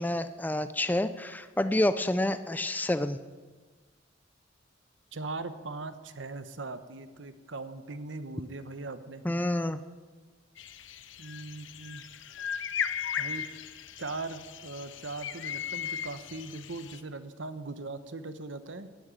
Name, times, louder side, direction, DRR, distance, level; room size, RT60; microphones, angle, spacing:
voice 1, 0.0-3.2 9.2-9.8, left 1 dB, 10° left, 11 dB, 0.4 m, -28 dB
voice 2, 5.1-9.2 11.2-12.0 13.2-13.5 14.0-18.9, right 3 dB, 75° right, 11 dB, 1.1 m, -40 dB
sound 1, 10.6-17.0, left 8 dB, 80° left, 0.8 m, -37 dB
15.5 x 9.0 x 8.9 m, 1.4 s
head